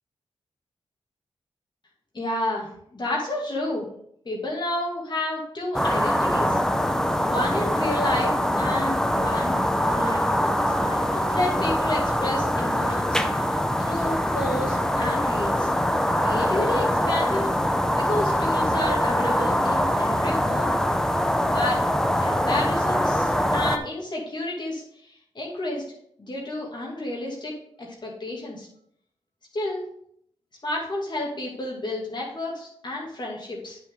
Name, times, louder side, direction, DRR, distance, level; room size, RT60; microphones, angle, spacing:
voice 1, 2.1-3.9 4.2-6.6 7.2-10.4 10.8-15.7 16.1-17.5 17.9-20.8 21.5-21.8 22.2-25.8 26.2-27.5 27.8-28.7 29.5-29.8 30.6-33.8, left 1 dB, 45° left, -2 dB, 2.5 m, -30 dB
sound 1, 5.7-23.8, equal, 5° left, 0.7 m, -23 dB
9.0 x 6.1 x 3.9 m, 0.68 s
cardioid pair, 60°, 11 cm